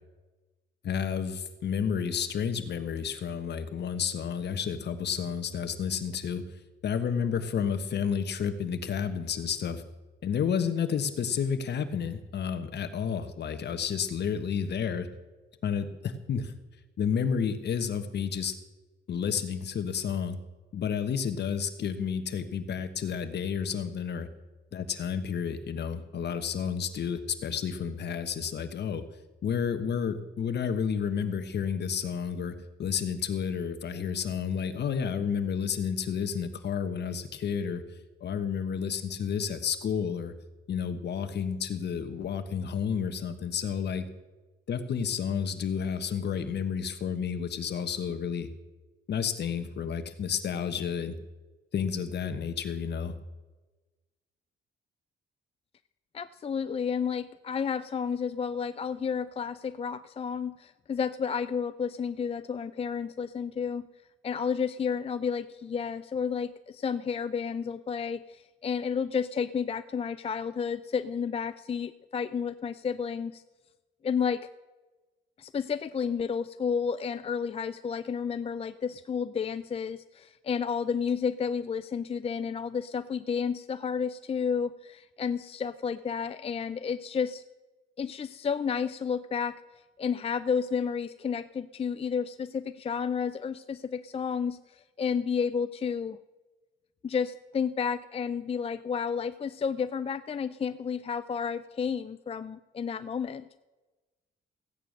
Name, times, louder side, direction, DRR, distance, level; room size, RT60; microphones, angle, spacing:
voice 1, 0.8-6.4 6.8-9.8 10.2-15.1 15.6-16.5 17.0-18.5 19.1-20.4 20.7-24.3 24.7-29.0 29.4-32.5 32.8-37.8 38.2-40.3 40.7-44.1 44.7-48.5 49.1-51.1 51.7-53.1, left 7 dB, 60° left, 10 dB, 1.4 m, -31 dB
voice 2, 56.1-63.9 64.2-73.4 74.0-74.5 75.4-87.4 88.0-89.6 90.0-96.2 97.0-103.4, left 6 dB, 30° left, 12 dB, 0.5 m, -31 dB
15.0 x 9.0 x 6.6 m, 1.2 s
cardioid pair, 90°, 20 cm